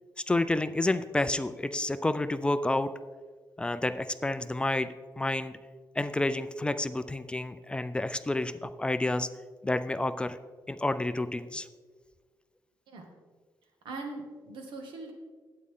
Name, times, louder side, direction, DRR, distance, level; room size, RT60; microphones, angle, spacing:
voice 1, 0.3-2.9 3.6-5.5 6.0-9.3 9.6-10.4 10.7-11.7, left 2 dB, 15° left, 12 dB, 0.4 m, -29 dB
voice 2, 13.8-15.1, right 3 dB, 85° right, 2 dB, 2.0 m, -40 dB
12.0 x 8.7 x 3.7 m, 1.5 s
cardioid pair, 135°, 8 cm